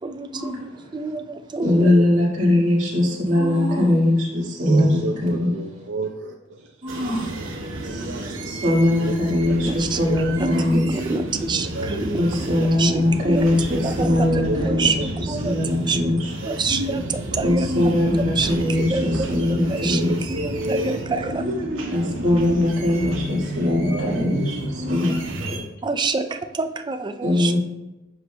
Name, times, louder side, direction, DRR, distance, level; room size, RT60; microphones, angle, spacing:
voice 1, 0.0-1.9 4.7-4.8 8.4-8.5 9.6-10.0 10.4-10.5 10.9-13.5 13.8-15.6 15.9-16.0 16.4-17.7 18.4-18.6 18.9-19.3 19.6-21.3 25.8-27.5, right 4 dB, 25° right, 7 dB, 0.4 m, -27 dB
voice 2, 1.6-5.5 6.8-7.3 7.8-10.8 12.2-15.0 15.4-16.3 17.4-20.1 21.3-21.5 21.9-25.6 27.2-27.6, left 1 dB, 40° right, -6 dB, 2.0 m, -21 dB
voice 3, 4.7-6.8 7.3-7.4 9.1-9.2 10.1-10.2 10.5-10.6 11.6-11.9 14.5-15.1 15.5-15.7 16.4-16.6 16.9-17.1 19.7-21.0 23.8-24.7, right 2 dB, 65° right, 0 dB, 0.6 m, -31 dB
sound 1, 6.9-25.6, right 1 dB, 85° right, 1.1 m, -30 dB
7.8 x 6.0 x 2.3 m, 0.98 s
head